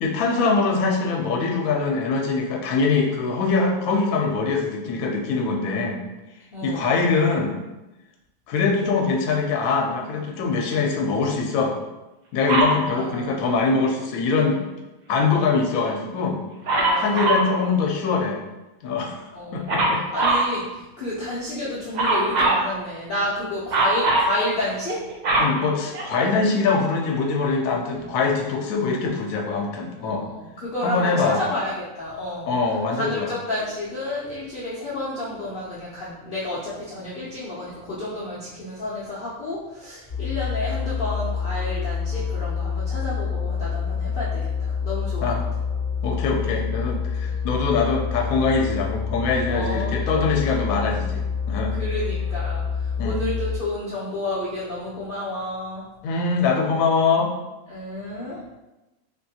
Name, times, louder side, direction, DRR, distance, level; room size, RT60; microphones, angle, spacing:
voice 1, 0.0-6.0 6.6-7.5 8.5-11.7 12.3-14.6 15.1-16.4 16.9-18.4 18.8-19.2 19.5-20.0 25.4-30.3 30.8-31.4 32.5-33.3 45.2-45.4 46.0-51.7 53.0-53.2 56.0-57.3, left 4 dB, 85° left, 1 dB, 1.0 m, -23 dB
voice 2, 6.5-7.0 12.9-13.4 16.7-17.5 19.3-25.0 28.0-28.1 30.0-32.5 32.9-45.3 47.2-47.4 49.5-50.4 51.7-55.9 57.7-58.4, left 1 dB, 55° left, -8 dB, 0.6 m, -31 dB
Dog, 12.5-12.8 16.7-17.5 19.7-20.5 21.9-22.7 23.7-24.3 24.9-26.4 27.1-27.2, right 2 dB, 80° right, 0.4 m, -21 dB
sound 1, 40.1-53.6, left 6 dB, 50° right, 1.3 m, -27 dB
3.5 x 2.6 x 2.7 m, 1.0 s
omnidirectional pair, 1.4 m